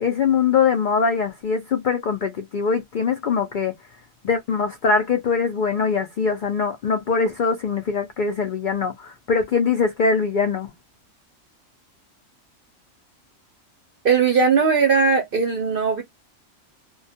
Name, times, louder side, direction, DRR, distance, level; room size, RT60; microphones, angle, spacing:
voice 1, 0.0-3.7 4.2-10.7, left 5 dB, 75° left, 0.4 m, -22 dB
voice 2, 14.0-16.0, right 5 dB, 60° right, 0.6 m, -19 dB
2.2 x 2.2 x 2.6 m
omnidirectional pair, 1.4 m